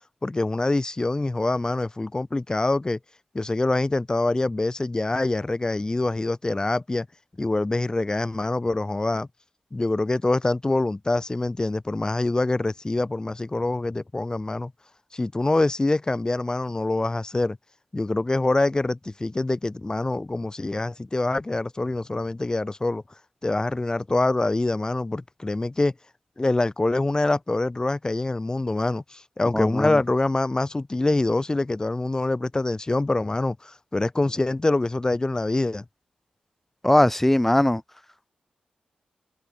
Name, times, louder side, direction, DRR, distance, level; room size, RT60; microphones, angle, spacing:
voice 1, 0.2-3.0 3.3-7.1 7.4-9.3 9.7-14.7 15.1-17.6 17.9-23.0 23.4-25.9 26.4-35.8, left 2 dB, 25° left, 2.4 m, -25 dB
voice 2, 29.5-30.0 36.8-37.8, left 1 dB, 10° left, 0.9 m, -20 dB
cardioid pair, 55°, 3 cm